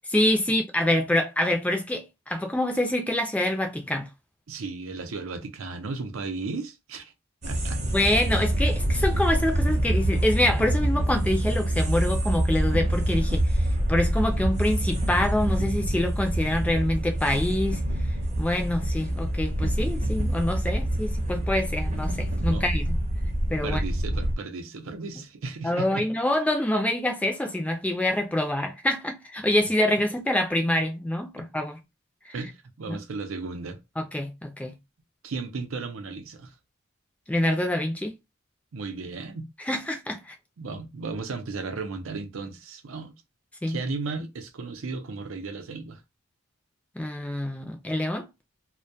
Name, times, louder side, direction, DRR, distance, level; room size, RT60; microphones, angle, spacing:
voice 1, 0.1-4.1 7.9-17.8 18.4-23.0 23.5-23.8 25.6-31.8 32.3-32.4 32.9-33.0 34.0-34.7 37.3-38.1 39.7-40.3 43.6-43.8 47.0-48.3, left 1 dB, 5° left, 0.4 m, -26 dB
voice 2, 4.5-7.1 7.4-7.8 20.7-20.8 22.5-22.6 23.6-26.0 32.3-33.8 35.2-36.5 38.7-39.5 40.6-43.1 43.7-46.0, right 3 dB, 90° right, 0.5 m, -35 dB
sound 1, 7.4-24.3, right 1 dB, 35° right, 0.6 m, -26 dB
2.2 x 2.2 x 2.6 m
head